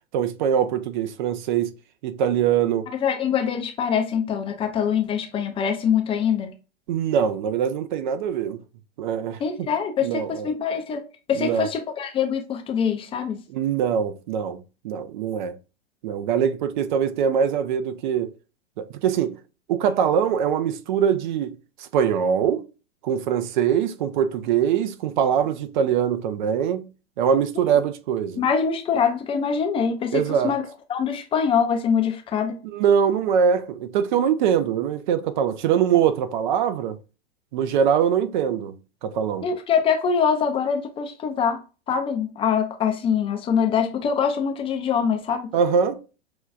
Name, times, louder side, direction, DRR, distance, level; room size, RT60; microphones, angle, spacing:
voice 1, 0.1-1.7 2.0-2.9 6.9-8.6 9.0-9.7 10.0-10.5 11.4-11.7 13.5-15.6 16.0-18.3 18.8-19.4 19.7-22.6 23.0-26.9 27.2-28.4 30.1-30.6 32.6-37.0 37.5-38.8 39.0-39.5 45.5-46.0, right 8 dB, 50° right, 0.5 m, -23 dB
voice 2, 3.0-6.5 9.4-11.0 11.3-13.4 27.5-27.8 28.4-30.6 30.9-32.6 39.4-45.5, left 7 dB, 15° left, 0.4 m, -24 dB
6.0 x 2.3 x 2.4 m
figure-of-eight pair, 100°, 32 cm